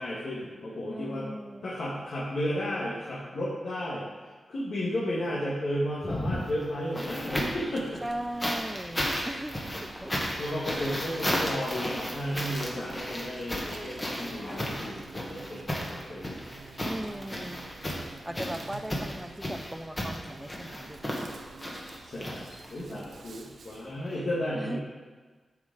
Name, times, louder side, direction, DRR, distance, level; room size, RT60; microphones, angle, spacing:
voice 1, 0.0-1.3 1.6-4.0 4.5-8.0 10.4-16.4 22.0-24.8, equal, 65° left, -7 dB, 1.6 m, -33 dB
voice 2, 0.9-1.6 8.0-10.1 16.8-17.7 18.2-21.4 22.9-23.2 24.5-24.8, right 1 dB, 5° right, 9 dB, 0.4 m, -38 dB
sound 1, 5.9-7.7 8.4-22.9 24.0-24.1, equal, 20° left, 1.4 m, -34 dB
Zipper (clothing), 6.9-15.6, left 1 dB, 45° left, 2.4 m, -52 dB
Insect, 6.9-23.9, right 4 dB, 90° right, 0.6 m, -49 dB
11.0 x 4.9 x 3.9 m, 1.4 s
wide cardioid pair, 120°, 0 cm